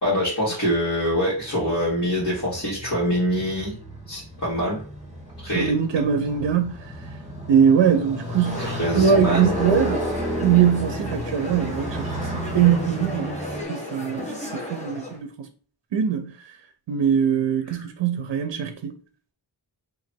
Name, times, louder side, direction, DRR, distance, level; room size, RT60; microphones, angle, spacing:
voice 1, 0.0-3.8 4.1-4.8 5.4-5.7 8.6-9.6, equal, 45° left, 1.7 m, -24 dB
Motorcycle, 1.4-13.6, equal, 15° right, 1.3 m, -33 dB
voice 2, 5.5-6.9 7.5-8.7 9.0-10.1 10.4-13.4 13.7-15.5 15.9-16.5 16.9-18.9, right 8 dB, 75° right, 0.5 m, -22 dB
sound 1, 8.4-15.2, left 1 dB, 15° left, 1.1 m, -35 dB
3.0 x 2.6 x 4.3 m
wide cardioid pair, 80°, 43 cm